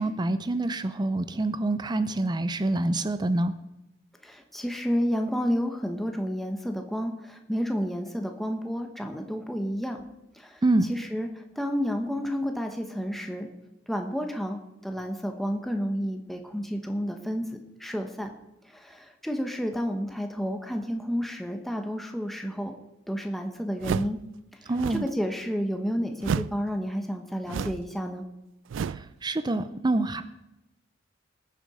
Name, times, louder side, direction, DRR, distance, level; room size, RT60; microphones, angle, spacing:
voice 1, 0.0-3.5 10.6-10.9 24.7-25.1 29.2-30.2, right 2 dB, 25° right, 11 dB, 0.5 m, -26 dB
voice 2, 4.2-10.1 10.4-10.6 10.9-13.5 13.9-17.5 17.8-18.3 18.7-22.7 23.1-24.2 24.9-28.2, equal, ahead, 3 dB, 1.0 m, -30 dB
sound 1, 23.8-24.2 24.7-25.1 26.2-26.6 27.5-27.9 28.7-29.1, right 6 dB, 80° right, 0.3 m, -31 dB
19.5 x 7.2 x 4.9 m, 0.92 s
head